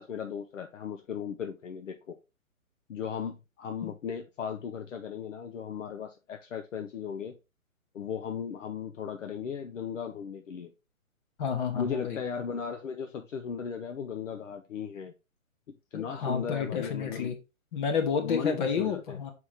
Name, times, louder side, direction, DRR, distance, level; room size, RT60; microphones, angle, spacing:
voice 1, 0.0-2.1 2.9-7.3 7.9-10.7 11.7-15.1 15.7-17.3 18.2-19.2, left 7 dB, 60° left, 0.8 m, -36 dB
voice 2, 11.4-12.2 15.9-17.3 17.7-19.3, left 6 dB, 35° left, 1.3 m, -30 dB
5.6 x 4.9 x 3.4 m
hypercardioid pair, 140°, 42 cm